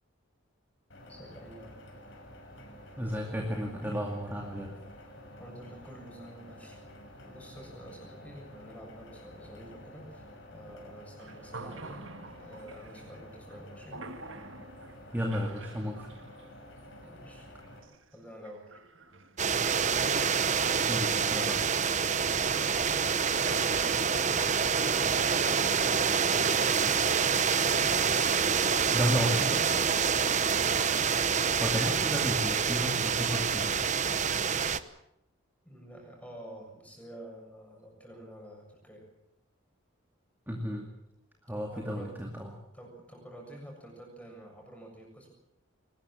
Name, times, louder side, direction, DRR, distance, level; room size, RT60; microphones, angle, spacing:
sound 1, 0.9-17.8, left 1 dB, 60° left, 6.0 m, -50 dB
voice 1, 1.1-1.8 5.4-6.9 7.2-10.2 10.5-12.1 12.4-14.0 17.0-17.5 17.8-18.8 23.4-25.7 35.7-39.0 41.7-42.1 42.7-45.3, right 1 dB, 5° left, 1 dB, 7.1 m, -49 dB
voice 2, 3.0-4.8 15.1-16.2 20.9-21.7 28.9-29.7 31.6-33.8 40.5-40.9 41.5-42.6, equal, 10° right, 0 dB, 2.4 m, -33 dB
sound 2, 11.2-25.8, right 3 dB, 65° right, 1.7 m, -49 dB
sound 3, 19.4-34.8, right 6 dB, 35° right, 0.9 m, -27 dB
22.5 x 20.0 x 7.6 m, 0.84 s
head